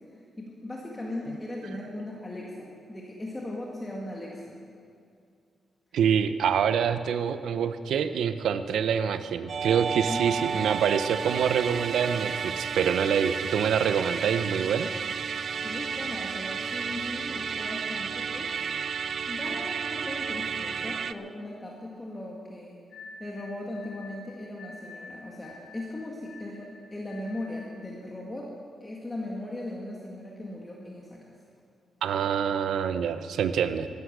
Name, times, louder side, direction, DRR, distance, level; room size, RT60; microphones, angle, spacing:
voice 1, 0.4-4.6 10.1-10.5 15.6-18.9 19.3-22.8 23.2-31.3, left 1 dB, 15° left, -3 dB, 1.9 m, -38 dB
voice 2, 5.9-14.9 32.0-33.9, right 7 dB, 85° right, 11 dB, 0.7 m, -26 dB
Musical instrument, 9.5-21.1, right 6 dB, 55° right, 0.4 m, -32 dB
sound 1, 22.9-27.8, left 3 dB, 75° left, 4.9 m, -48 dB
14.5 x 12.5 x 6.8 m, 2.3 s
cardioid pair, 115°, 0 cm